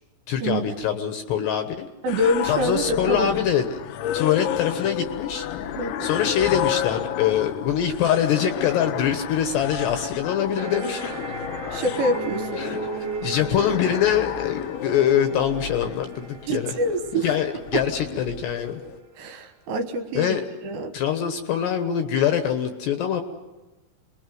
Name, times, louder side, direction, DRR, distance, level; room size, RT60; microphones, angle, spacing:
voice 1, 0.3-1.9 2.4-3.7 4.1-5.5 6.0-11.2 12.6-16.7 17.2-18.8 20.1-20.4 20.9-23.2, left 9 dB, 70° left, 7 dB, 2.8 m, -24 dB
voice 2, 2.0-3.3 5.8-6.1 11.7-12.6 16.5-17.3 17.7-17.8 19.2-20.4 20.6-20.9, right 1 dB, 70° right, 6 dB, 3.0 m, -26 dB
sound 1, 2.1-19.0, left 11 dB, 85° left, 3.7 m, -32 dB
sound 2, 10.5-19.6, right 3 dB, 40° right, 1.9 m, -41 dB
sound 3, 11.8-15.5 15.8-15.9, right 5 dB, 55° right, 1.7 m, -35 dB
27.5 x 21.5 x 7.8 m, 1.1 s
omnidirectional pair, 5.9 m